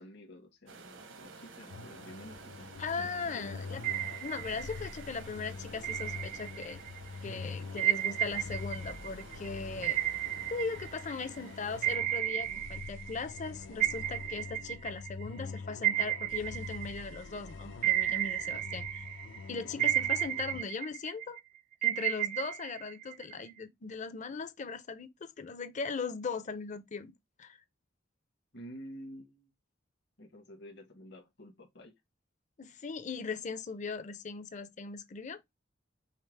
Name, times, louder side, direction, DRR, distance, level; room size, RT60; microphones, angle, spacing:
voice 1, 0.0-3.7 19.6-19.9 28.5-29.5 30.2-31.9, equal, 60° left, 1.2 m, -50 dB
sound 1, 0.7-12.0, right 4 dB, 80° right, 1.0 m, -52 dB
sound 2, 1.7-20.6, left 4 dB, 80° left, 0.6 m, -45 dB
voice 2, 2.8-3.8 4.2-6.8 7.2-10.0 10.5-19.0 19.5-21.4 21.8-27.1 27.4-27.6 32.6-35.4, left 4 dB, 40° left, 0.5 m, -39 dB
sound 3, 3.8-5.1 5.8-7.0 7.8-11.4 11.8-13.5 13.8-17.4 17.8-19.4 19.8-21.4 21.8-23.5, right 13 dB, 45° right, 0.5 m, -33 dB
5.7 x 2.0 x 4.5 m
head